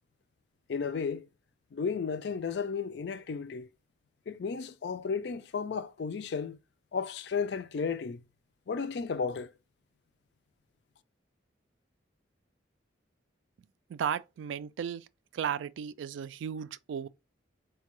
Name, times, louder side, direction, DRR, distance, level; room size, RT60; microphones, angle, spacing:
voice 1, 0.7-1.3 1.7-3.7 4.3-6.6 6.9-8.2 8.7-9.5, left 5 dB, 60° left, 0.4 m, -33 dB
voice 2, 13.9-15.1 15.3-17.1, right 8 dB, 75° right, 0.3 m, -35 dB
4.4 x 2.2 x 2.9 m
head